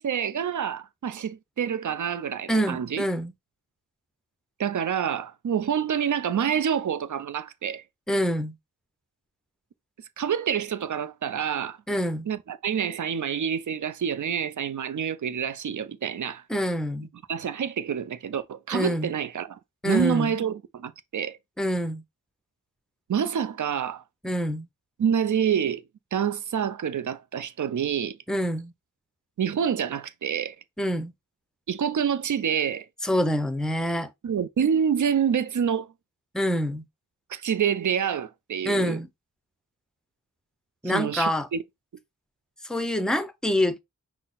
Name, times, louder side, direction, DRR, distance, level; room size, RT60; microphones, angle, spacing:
voice 1, 0.0-3.1 4.6-7.8 10.2-11.8 12.3-16.4 17.3-19.6 19.8-21.4 23.1-24.0 25.0-25.8 26.1-28.2 29.4-30.6 31.7-32.8 34.2-35.9 37.3-39.0 40.8-41.6, right 8 dB, 65° right, 0.6 m, -27 dB
voice 2, 2.5-3.3 8.1-8.5 11.9-12.3 16.5-17.1 18.7-19.1 19.8-20.3 21.6-22.0 24.2-24.7 28.3-28.7 30.8-31.1 33.0-34.1 36.3-36.8 38.7-39.1 40.8-41.5 42.7-43.8, equal, ahead, 0.6 m, -26 dB
5.7 x 2.1 x 4.0 m
wide cardioid pair, 65°, 33 cm